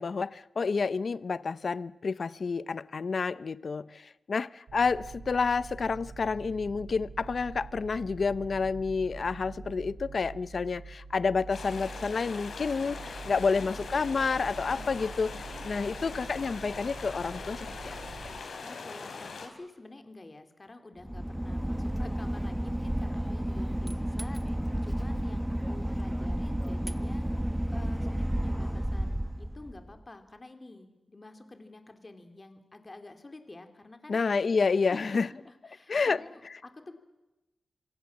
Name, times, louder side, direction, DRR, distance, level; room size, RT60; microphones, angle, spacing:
voice 1, 0.0-18.0 34.1-35.3 35.9-36.2, left 4 dB, 55° left, 0.8 m, -29 dB
sound 1, 4.7-18.4, right 4 dB, 70° right, 4.8 m, -45 dB
sound 2, 11.5-19.5, left 4 dB, 85° left, 4.8 m, -42 dB
voice 2, 18.6-27.4 27.7-34.2 34.8-37.0, left 2 dB, 25° left, 3.2 m, -49 dB
Boat Water vehicle / Engine, 21.0-30.0, equal, 5° right, 1.1 m, -32 dB
27.0 x 25.5 x 7.3 m
wide cardioid pair, 120°, 0 cm